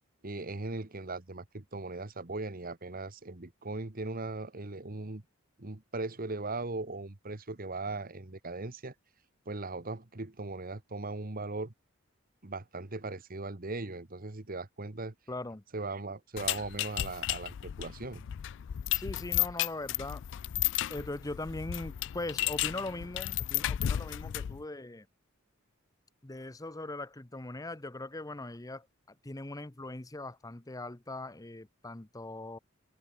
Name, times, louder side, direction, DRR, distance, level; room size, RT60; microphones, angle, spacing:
voice 1, 0.2-5.2 5.6-8.9 9.4-11.7 12.4-15.1 15.7-18.3, right 3 dB, 40° right, 1.4 m, -39 dB
voice 2, 15.3-15.6 18.9-20.2 20.9-25.0 26.2-28.9 29.2-32.6, left 2 dB, 15° left, 0.9 m, -40 dB
sound 1, 16.4-24.6, left 13 dB, 60° left, 0.3 m, -33 dB
open air
head